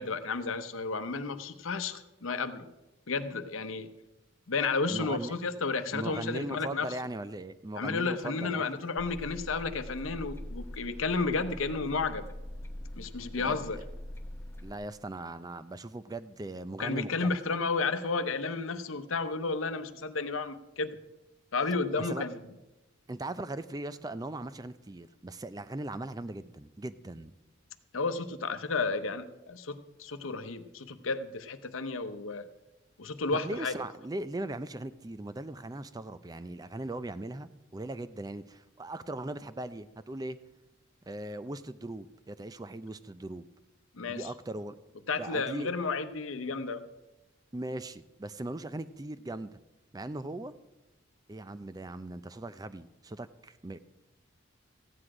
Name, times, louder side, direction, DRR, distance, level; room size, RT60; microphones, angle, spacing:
voice 1, 0.0-2.6 3.1-3.9 4.5-6.9 7.8-12.3 12.9-13.8 16.8-21.0 21.5-22.4 27.9-32.5 33.0-33.8 43.9-44.3 45.1-46.9, left 4 dB, 85° left, 10 dB, 0.8 m, -32 dB
voice 2, 4.9-5.4 5.9-8.8 13.3-13.8 14.6-17.4 22.0-22.2 23.1-27.3 33.3-40.4 41.1-43.5 44.1-44.8 45.2-45.7 47.5-49.6 49.9-50.5 51.3-53.8, right 2 dB, 20° right, 14 dB, 0.4 m, -39 dB
sound 1, 9.0-14.7, left 1 dB, 10° left, 0.8 m, -43 dB
15.0 x 9.8 x 4.9 m, 1.0 s
head